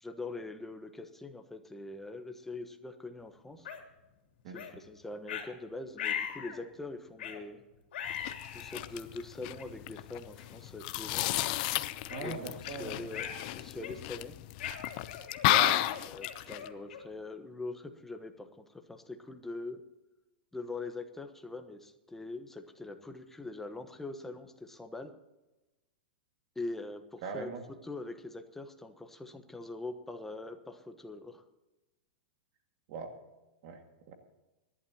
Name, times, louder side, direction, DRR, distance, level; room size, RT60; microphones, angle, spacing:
voice 1, 0.0-3.7 4.5-7.6 8.5-11.2 12.2-13.3 13.5-14.4 16.1-19.8 20.5-25.1 26.5-27.5 27.8-31.4, left 2 dB, 5° left, 6 dB, 1.1 m, -43 dB
sound 1, 3.7-3.8 4.6-4.7 5.3-5.5 6.0-6.6 7.2-7.4 7.9-8.8 9.6-9.7 10.4-10.6 11.0-11.2 11.7-12.8 13.1-13.5 13.8-14.2 14.6-17.2, left 9 dB, 80° left, 2.8 m, -40 dB
sound 2, 8.1-16.7, left 16 dB, 50° left, 0.7 m, -33 dB
voice 2, 12.1-13.0 15.5-15.9 27.2-27.6 32.9-33.1 33.6-33.8 34.1-34.2, right 4 dB, 50° right, 4 dB, 2.0 m, -39 dB
25.5 x 11.5 x 2.9 m, 1.0 s
supercardioid pair, 140°, 6 cm